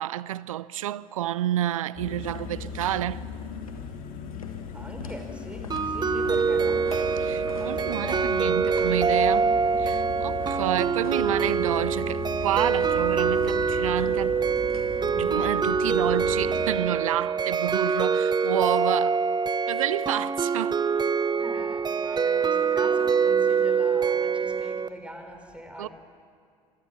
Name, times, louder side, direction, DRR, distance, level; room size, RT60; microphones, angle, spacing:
voice 1, 0.0-3.3 6.1-6.2 7.2-14.3 15.1-19.2 19.7-20.8 25.8-25.9, right 12 dB, 80° right, 0.5 m, -29 dB
sound 1, 2.0-16.7, left 7 dB, 55° left, 2.2 m, -38 dB
sound 2, 2.3-2.6 2.9-3.2 3.5-12.4 12.7-15.0 15.5-16.3 16.6-16.7, left 4 dB, 90° left, 1.5 m, -47 dB
voice 2, 4.7-6.8 7.6-8.3 21.4-25.9, equal, 5° right, 4.1 m, -42 dB
sound 3, 5.7-24.9, right 5 dB, 25° right, 0.8 m, -25 dB
26.0 x 19.5 x 7.1 m
figure-of-eight pair, 60°, 17 cm